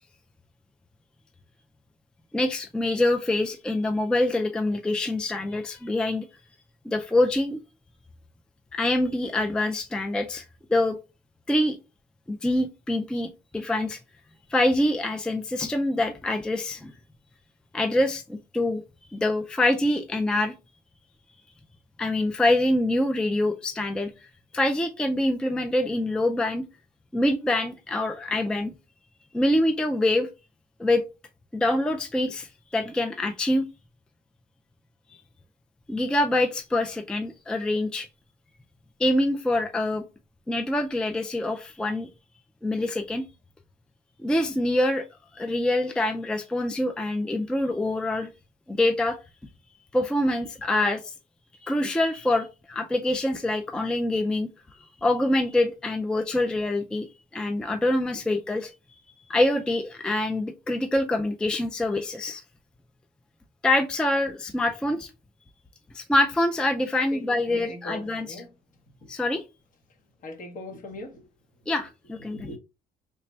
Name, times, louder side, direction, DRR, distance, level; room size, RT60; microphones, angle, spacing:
voice 1, 2.3-6.3 6.9-7.6 8.7-10.4 10.7-11.0 11.5-11.8 12.3-14.0 14.5-16.9 17.7-18.8 19.1-20.5 22.0-24.1 24.5-26.6 27.1-28.7 29.3-30.3 30.8-31.0 31.5-33.6 35.1-35.2 35.9-38.1 39.0-40.0 40.5-42.1 42.6-43.2 44.2-45.1 45.3-48.3 48.7-49.2 49.9-51.1 51.6-54.5 55.0-57.1 57.3-58.7 59.3-62.4 63.6-65.1 65.9-68.4 69.1-69.4 71.7-72.5, left 1 dB, 5° left, 0.3 m, -25 dB
voice 2, 67.5-68.5 70.2-71.2 72.3-72.6, left 1 dB, 50° left, 1.1 m, -40 dB
3.3 x 2.1 x 4.1 m
cardioid pair, 110°, 17 cm